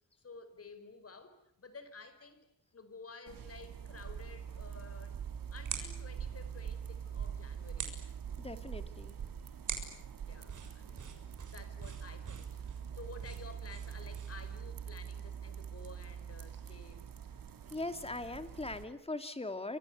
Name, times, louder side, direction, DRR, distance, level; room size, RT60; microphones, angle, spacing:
voice 1, 0.2-2.5 2.7-5.2 5.5-7.9 10.3-11.1 11.4-12.7 12.9-17.1, left 4 dB, 45° left, 11 dB, 5.1 m, -52 dB
sound 1, 3.3-18.8, right 8 dB, 80° right, 2.7 m, -44 dB
sound 2, 4.5-14.6, right 6 dB, 60° right, 6.9 m, -47 dB
voice 2, 8.4-9.1 17.7-19.8, left 2 dB, 15° left, 9 dB, 2.5 m, -40 dB
28.5 x 25.5 x 8.2 m, 0.72 s
cardioid pair, 105°, 34 cm